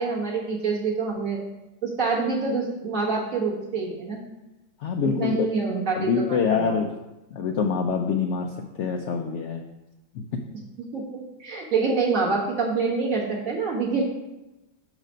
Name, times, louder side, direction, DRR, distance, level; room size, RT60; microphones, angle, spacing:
voice 1, 0.0-1.4 1.8-4.2 5.0-6.8 10.8-14.0, right 4 dB, 55° right, -3 dB, 1.8 m, -26 dB
voice 2, 4.8-5.5 5.9-6.9 7.3-8.5 8.8-9.6, left 6 dB, 90° left, 4 dB, 0.6 m, -25 dB
6.5 x 4.9 x 5.0 m, 1.0 s
omnidirectional pair, 1.8 m